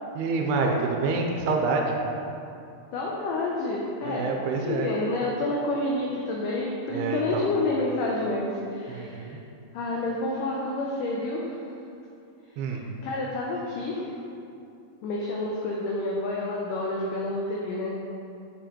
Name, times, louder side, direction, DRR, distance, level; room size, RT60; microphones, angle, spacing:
voice 1, 0.2-2.0 4.0-4.9 6.9-7.4 8.9-9.4 12.6-12.8, right 4 dB, 85° right, 1 dB, 2.6 m, -27 dB
voice 2, 2.9-9.3 9.7-11.5 13.0-14.1 15.0-17.9, left 2 dB, 85° left, -3 dB, 1.8 m, -29 dB
7.0 x 7.0 x 3.0 m, 2.6 s
omnidirectional pair, 4.6 m